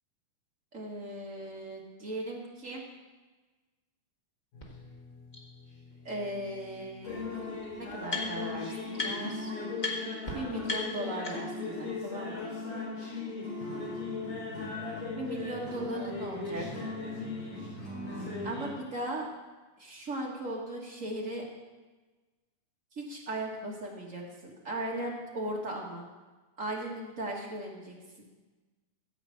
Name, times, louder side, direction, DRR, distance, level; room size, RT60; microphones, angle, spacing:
voice 1, 0.7-2.8 6.0-7.3 7.8-9.5 10.3-12.5 15.2-16.7 18.4-19.3 19.8-21.5 22.9-26.0 26.6-28.0, right 1 dB, 45° right, -2 dB, 1.0 m, -37 dB
sound 1, 4.5-18.7, left 3 dB, 80° left, 5.0 m, -38 dB
sound 2, 4.6-4.7 5.3-5.4 6.7-6.8 7.0-8.6 8.9-9.4 9.8-9.9 10.2-10.3 10.6-11.7, left 3 dB, 40° left, 0.6 m, -37 dB
15.0 x 5.0 x 7.7 m, 1.3 s
omnidirectional pair, 3.7 m